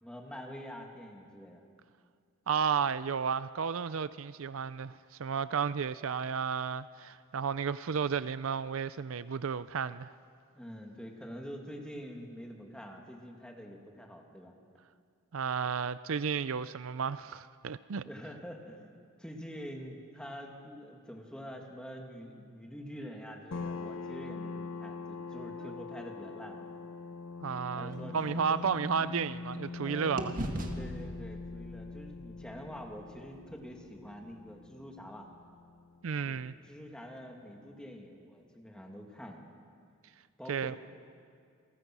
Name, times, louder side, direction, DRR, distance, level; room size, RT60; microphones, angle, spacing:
voice 1, 0.0-1.7 10.5-14.5 18.1-26.6 27.7-28.7 29.8-30.2 30.6-35.3 36.3-36.4 36.6-39.5 40.4-40.8, equal, 5° left, 2.3 m, -46 dB
voice 2, 2.5-10.1 15.3-18.0 25.6-25.7 27.4-30.3 36.0-36.5 40.5-40.8, right 6 dB, 75° right, 0.5 m, -33 dB
sound 1, 23.5-36.8, left 4 dB, 85° left, 1.0 m, -43 dB
sound 2, 27.5-29.8 30.2-34.1, right 1 dB, 40° right, 1.8 m, -42 dB
28.5 x 20.5 x 6.1 m
head